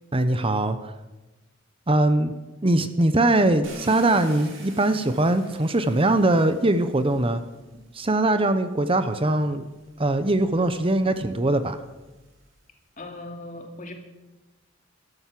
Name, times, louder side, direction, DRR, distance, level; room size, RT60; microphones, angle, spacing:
voice 1, 0.1-0.9 1.9-2.3 2.6-7.4 7.9-9.7 10.0-11.8, right 2 dB, 30° right, 11 dB, 0.8 m, -21 dB
Car, 3.6-7.7 8.7-8.8 9.3-12.6, right 2 dB, 75° right, 4.7 m, -47 dB
voice 2, 13.0-13.9, left 2 dB, 40° left, 3 dB, 2.6 m, -38 dB
14.0 x 13.0 x 7.6 m, 1.1 s
head